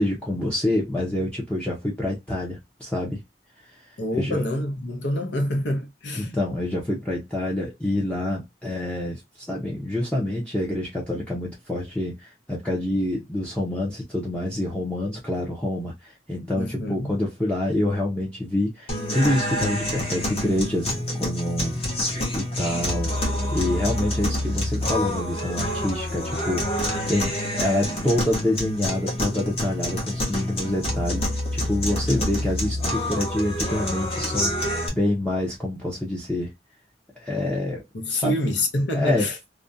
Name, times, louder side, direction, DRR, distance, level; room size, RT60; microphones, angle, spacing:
voice 1, 0.0-3.2 3.7-3.8 4.1-4.4 6.1-21.8 22.3-36.5 37.2-37.8 38.1-38.4 38.9-39.3, left 1 dB, 5° left, 0.5 m, -27 dB
voice 2, 4.0-6.3 16.5-17.2 37.9-39.4, left 1 dB, 75° left, 0.7 m, -27 dB
sound 1, 18.9-34.9, left 1 dB, 35° left, 0.9 m, -27 dB
2.4 x 2.1 x 2.5 m
head